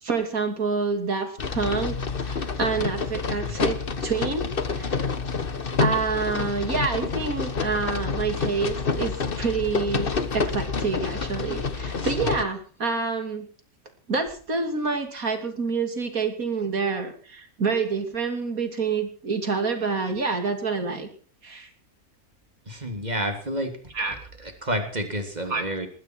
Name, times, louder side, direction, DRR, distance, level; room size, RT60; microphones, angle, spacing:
voice 1, 0.0-2.0 2.2-5.0 5.8-13.5 14.1-21.1 21.4-21.7 23.9-24.2 25.5-25.6, right 4 dB, 65° right, 6 dB, 3.3 m, -27 dB
sound 1, 1.4-12.4, left 5 dB, 40° left, 1.4 m, -28 dB
voice 2, 22.7-23.8 24.4-25.9, equal, 25° right, 5 dB, 3.2 m, -30 dB
21.0 x 15.0 x 4.7 m, 0.41 s
omnidirectional pair, 1.6 m